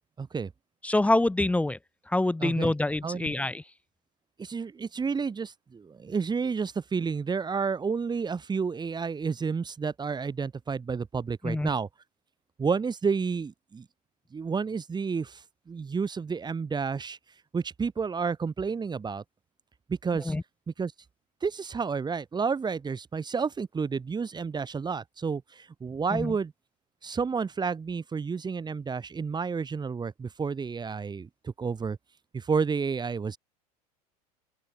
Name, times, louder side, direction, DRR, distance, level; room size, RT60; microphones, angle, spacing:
voice 1, 0.2-0.5 2.4-2.7 3.0-3.3 4.4-11.9 12.6-13.8 14.3-15.4 15.7-17.2 17.5-19.2 19.9-20.3 20.8-20.9 21.4-26.5 27.0-32.0 32.3-33.4, right 5 dB, 20° right, 3.0 m, -30 dB
voice 2, 0.8-1.8 2.1-3.6 11.4-11.7 20.2-20.4 26.1-26.3, left 2 dB, 5° left, 0.7 m, -26 dB
open air
hypercardioid pair, 85°, 20 cm